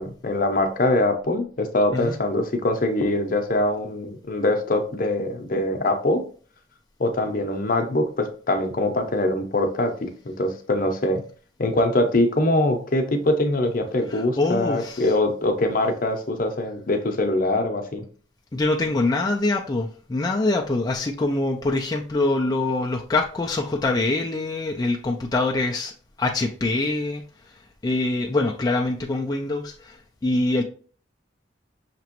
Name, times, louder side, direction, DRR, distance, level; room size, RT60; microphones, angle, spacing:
voice 1, 0.0-6.2 7.0-10.1 10.4-11.2 11.6-18.0, left 1 dB, 50° left, 0.7 m, -23 dB
voice 2, 14.1-15.1 18.5-25.9 26.2-30.6, left 2 dB, 20° left, 0.3 m, -24 dB
5.9 x 3.0 x 2.9 m
head